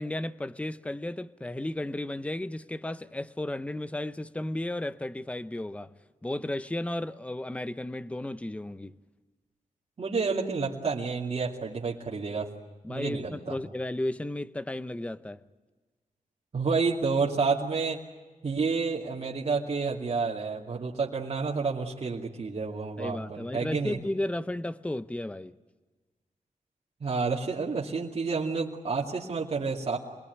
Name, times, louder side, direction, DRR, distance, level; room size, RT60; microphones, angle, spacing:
voice 1, 0.0-5.9 6.2-9.0 12.8-15.4 23.0-25.6, left 1 dB, 10° left, 0.7 m, -34 dB
voice 2, 10.0-12.5 12.9-13.6 16.5-18.0 18.4-24.0 27.0-30.0, right 4 dB, 50° right, 2.5 m, -29 dB
26.5 x 21.0 x 9.4 m
wide cardioid pair, 115°, 13 cm